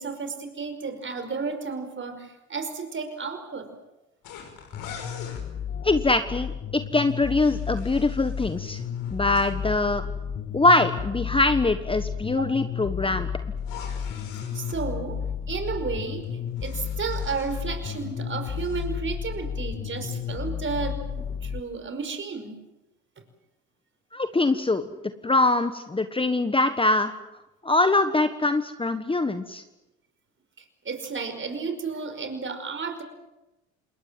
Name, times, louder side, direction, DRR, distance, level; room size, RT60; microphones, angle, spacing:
voice 1, 0.0-3.7 12.4-12.5 14.5-16.2 16.6-22.6 30.6-33.0, right 5 dB, 35° right, 8 dB, 5.2 m, -32 dB
sound 1, 4.2-5.4 7.1-9.5 13.6-14.8 16.2-18.1 18.4-18.9, left 6 dB, 70° left, 5.8 m, -45 dB
sound 2, 4.7-21.6, left 7 dB, 35° left, 1.7 m, -32 dB
voice 2, 5.8-8.8 9.1-10.0 10.5-13.3 24.1-24.9 25.2-27.1 27.6-29.6, left 2 dB, 15° left, 9 dB, 1.4 m, -23 dB
27.5 x 21.0 x 7.7 m, 1.0 s
supercardioid pair, 75°, 34 cm